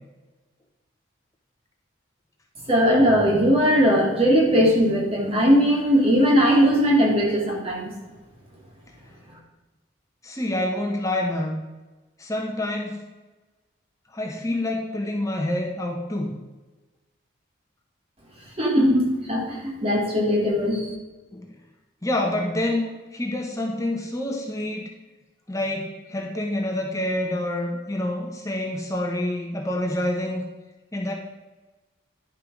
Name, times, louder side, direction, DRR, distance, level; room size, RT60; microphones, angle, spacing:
voice 1, 2.7-7.9 18.6-20.9, equal, 30° right, -2 dB, 2.3 m, -19 dB
voice 2, 10.2-11.6 12.2-13.0 14.1-16.3 21.3-21.5 22.0-24.8 25.5-30.4 30.9-31.1, left 1 dB, 15° left, 0 dB, 1.1 m, -27 dB
11.0 x 5.9 x 4.7 m, 1.2 s
head